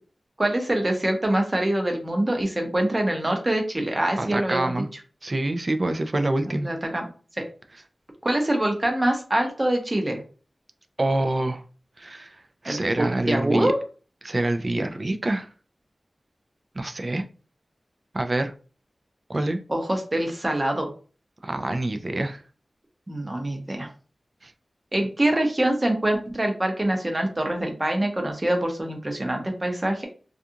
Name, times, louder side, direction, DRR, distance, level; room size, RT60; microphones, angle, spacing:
voice 1, 0.4-4.7 6.5-7.0 7.4-7.5 8.2-10.2 12.7-13.8 19.7-20.9 23.1-23.9 24.9-30.1, right 1 dB, 30° right, 3 dB, 0.8 m, -24 dB
voice 2, 4.2-4.9 5.2-6.7 11.0-11.6 12.0-13.7 14.2-15.5 16.8-17.2 18.1-18.5 19.3-19.6 21.4-22.4 24.4-24.5, right 2 dB, 50° right, 7 dB, 0.4 m, -26 dB
2.4 x 2.3 x 2.7 m, 0.37 s
wide cardioid pair, 50°, 0 cm